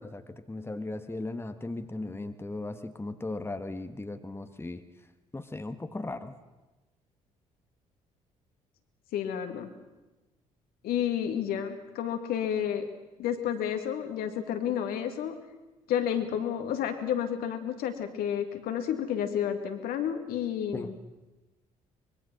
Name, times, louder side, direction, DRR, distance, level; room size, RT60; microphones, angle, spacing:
voice 1, 0.0-4.8 5.3-6.4 20.7-20.9, left 2 dB, 15° left, 8 dB, 1.5 m, -37 dB
voice 2, 9.1-9.7 10.8-12.9 13.2-15.4 15.9-20.9, left 9 dB, 60° left, 6 dB, 2.1 m, -30 dB
24.5 x 21.5 x 6.2 m, 1.1 s
figure-of-eight pair, 45°, 18 cm